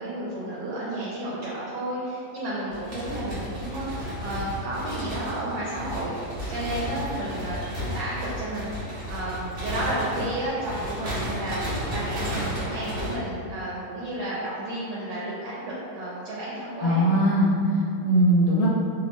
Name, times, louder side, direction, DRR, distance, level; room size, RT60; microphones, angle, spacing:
voice 1, 0.0-17.1, right 1 dB, 75° right, -8 dB, 1.2 m, -32 dB
sound 1, 2.7-13.1, equal, 55° right, 0.8 m, -33 dB
voice 2, 16.8-18.7, right 1 dB, 75° left, -5 dB, 1.2 m, -20 dB
3.1 x 2.0 x 3.0 m, 2.4 s
omnidirectional pair, 1.9 m